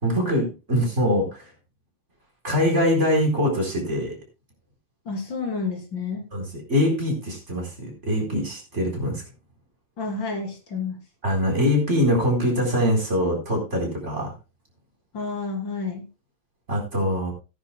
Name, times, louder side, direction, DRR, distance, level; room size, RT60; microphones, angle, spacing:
voice 1, 0.0-1.5 2.4-4.2 6.3-9.2 11.2-14.3 16.7-17.3, equal, 35° right, 1 dB, 4.4 m, -23 dB
voice 2, 5.1-6.2 10.0-11.0 15.1-16.1, left 4 dB, 60° left, 2 dB, 3.8 m, -30 dB
17.5 x 9.8 x 2.2 m, 0.29 s
omnidirectional pair, 2.2 m